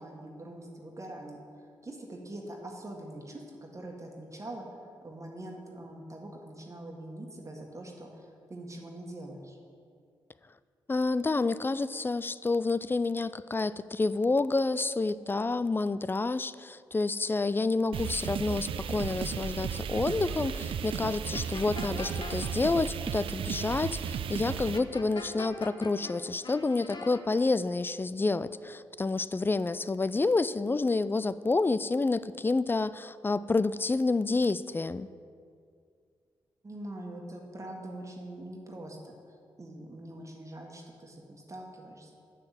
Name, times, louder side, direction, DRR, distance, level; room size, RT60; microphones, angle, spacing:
voice 1, 0.0-9.6 21.8-22.1 36.6-42.1, right 1 dB, 30° right, 1 dB, 1.6 m, -44 dB
voice 2, 10.9-35.1, left 3 dB, 20° left, 16 dB, 0.3 m, -29 dB
sound 1, 17.9-24.8, right 7 dB, 65° right, 0.4 m, -34 dB
sound 2, 21.3-22.7 24.7-26.1 26.4-27.2, left 4 dB, 50° left, 1.0 m, -42 dB
6.7 x 6.3 x 7.6 m, 2.3 s
supercardioid pair, 45°, 10 cm